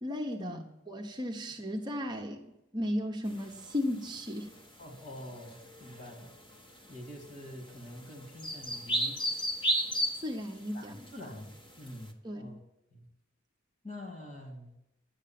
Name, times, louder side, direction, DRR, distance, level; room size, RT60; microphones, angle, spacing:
voice 1, 0.0-2.4 2.7-4.5 10.2-11.0 12.2-12.6, left 1 dB, 20° right, 0 dB, 0.9 m, -35 dB
sound 1, 3.3-12.0, equal, 25° left, 1.3 m, -35 dB
voice 2, 4.8-6.3 6.9-9.5 10.7-12.6 12.9-13.1 13.8-14.7, left 1 dB, 40° left, 3 dB, 2.8 m, -46 dB
11.0 x 8.2 x 7.6 m, 0.85 s
head